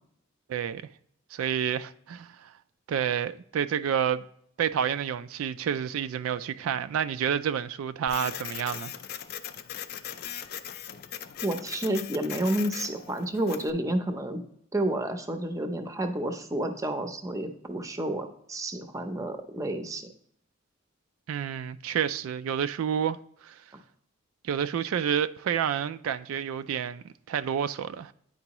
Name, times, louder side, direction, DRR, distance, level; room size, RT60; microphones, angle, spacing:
voice 1, 0.5-0.9 1.3-2.5 2.9-4.2 4.6-8.9 21.3-23.6 24.4-28.1, right 8 dB, 80° right, 0.3 m, -29 dB
Printer, 8.1-13.7, left 9 dB, 45° left, 0.4 m, -39 dB
voice 2, 11.4-14.4 14.7-20.1, right 1 dB, 15° right, 0.6 m, -30 dB
9.4 x 4.5 x 2.9 m
head